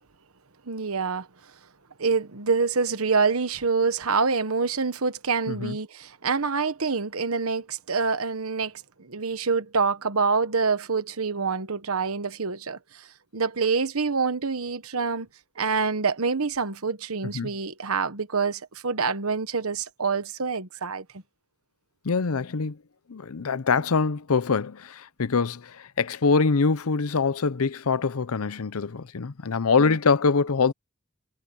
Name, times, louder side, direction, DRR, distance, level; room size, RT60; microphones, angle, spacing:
voice 1, 0.7-1.3 2.0-8.7 9.0-13.1 13.3-15.3 15.6-21.0 29.8-30.0, right 4 dB, 85° right, 1.2 m, -26 dB
voice 2, 22.0-22.8 23.1-30.7, left 4 dB, 85° left, 0.7 m, -24 dB
head